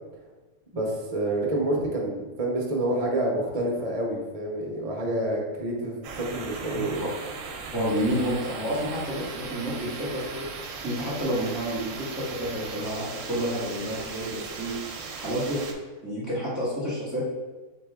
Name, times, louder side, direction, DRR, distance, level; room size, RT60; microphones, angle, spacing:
voice 1, 0.7-7.1, right 1 dB, 45° right, -1 dB, 0.5 m, -28 dB
sound 1, 6.0-15.7, right 4 dB, 65° right, 0.9 m, -38 dB
voice 2, 6.7-7.1 7.7-10.4 10.8-14.7 15.1-15.7 16.0-17.2, equal, 15° right, -8 dB, 1.2 m, -29 dB
4.0 x 3.2 x 3.5 m, 1.3 s
omnidirectional pair, 1.6 m